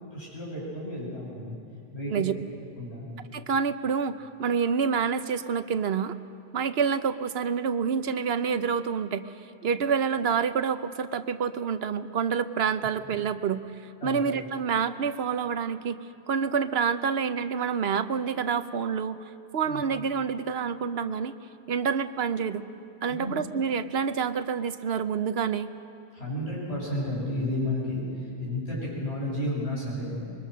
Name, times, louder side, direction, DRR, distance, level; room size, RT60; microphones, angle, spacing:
voice 1, 0.1-1.6 1.9-2.2 2.8-3.1 14.0-14.2 19.7-19.8 23.1-23.3 26.1-28.0 28.4-30.2, left 1 dB, 70° left, -6 dB, 8.3 m, -32 dB
voice 2, 3.3-6.1 6.5-9.3 9.6-16.0 16.3-19.2 19.5-21.3 21.7-22.6 23.0-25.7, right 6 dB, 65° right, 11 dB, 1.0 m, -27 dB
25.0 x 22.5 x 6.5 m, 2.5 s
omnidirectional pair, 1.1 m